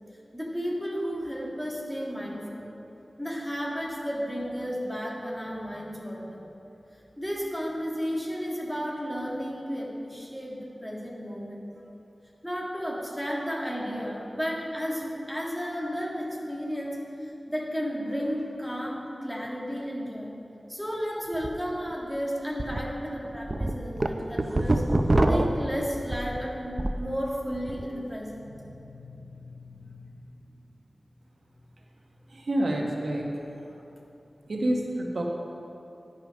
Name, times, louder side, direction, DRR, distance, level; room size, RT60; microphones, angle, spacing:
voice 1, 0.3-2.7 3.2-6.4 7.2-11.7 12.4-20.3 20.7-24.8 25.3-30.0, equal, 5° left, -3 dB, 1.7 m, -33 dB
sound 1, 21.3-21.5 21.9-22.0 22.6-22.8 23.2-27.1 27.4-27.8, right 1 dB, 40° right, 0.5 m, -25 dB
voice 2, 32.3-33.3 34.5-35.2, right 1 dB, 85° right, 0 dB, 1.0 m, -27 dB
10.5 x 5.6 x 5.2 m, 2.8 s
wide cardioid pair, 60°, 0 cm